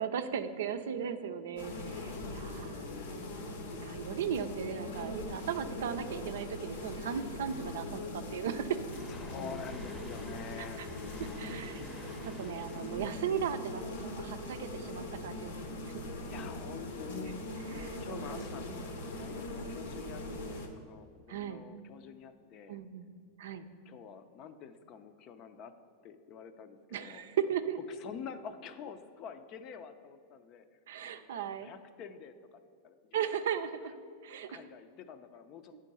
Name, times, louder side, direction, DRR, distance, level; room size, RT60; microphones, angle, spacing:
voice 1, 0.0-3.2 3.8-8.8 10.6-10.9 11.4-15.5 17.7-18.4 21.3-21.6 22.7-23.1 23.4-23.7 26.9-27.8 30.9-31.7 33.1-34.0 34.2-34.6 35.7-35.8, right 8 dB, 80° right, 9 dB, 0.4 m, -37 dB
sound 1, 1.6-20.7, left 1 dB, 75° left, 0.9 m, -41 dB
voice 2, 2.0-3.3 9.1-11.0 14.4-14.5 16.3-17.4 17.7-22.8 23.9-25.7 26.0-27.2 27.9-30.7 31.0-33.0 34.5-35.8, left 7 dB, 45° left, 10 dB, 0.5 m, -48 dB
sound 2, 8.9-14.5 15.0-15.1 16.4-16.5, equal, ahead, 0.7 m, -51 dB
8.9 x 3.7 x 5.4 m, 2.3 s
hypercardioid pair, 115°, 0 cm